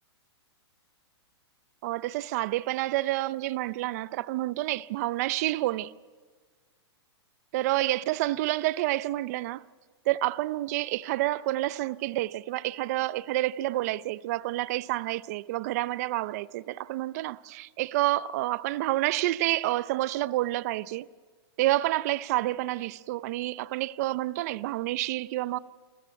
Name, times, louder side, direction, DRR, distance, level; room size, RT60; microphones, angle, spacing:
voice 1, 1.8-5.9 7.5-9.6 10.1-21.1 21.6-25.6, right 16 dB, 35° right, 0.5 m, -29 dB
28.0 x 13.5 x 9.0 m
hypercardioid pair, 155°, 14 cm